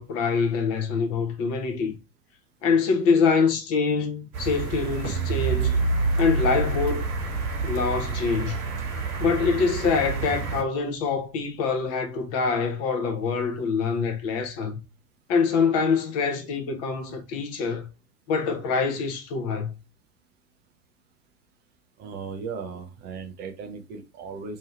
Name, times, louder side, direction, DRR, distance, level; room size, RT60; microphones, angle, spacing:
voice 1, 0.0-2.0 2.6-5.8 6.2-7.0 7.6-8.6 9.2-14.8 15.3-17.9 18.3-19.8, left 5 dB, 30° left, 0.7 m, -25 dB
sound 1, 4.3-10.6, right 5 dB, 60° right, 1.1 m, -31 dB
sound 2, 5.0-11.3, right 3 dB, 85° left, 1.0 m, -29 dB
voice 2, 22.0-24.6, right 5 dB, 20° right, 0.5 m, -37 dB
2.8 x 2.7 x 4.1 m
figure-of-eight pair, 85°, 49 cm